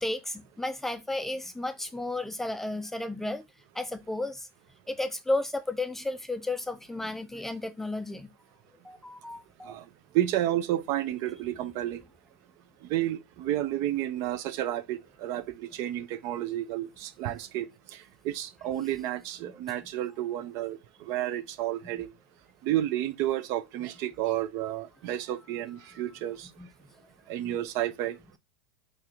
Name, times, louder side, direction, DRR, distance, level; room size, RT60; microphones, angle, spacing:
voice 1, 0.0-3.4 3.8-4.5 4.9-8.3 8.8-9.7 19.4-19.5 21.9-22.0 26.6-26.7 27.4-27.6, left 2 dB, 5° left, 0.4 m, -33 dB
voice 2, 10.1-12.0 12.9-17.7 18.2-20.8 21.1-22.1 22.6-26.5 27.3-28.2, right 13 dB, 50° right, 0.5 m, -31 dB
3.2 x 2.8 x 3.7 m
hypercardioid pair, 105°, 6 cm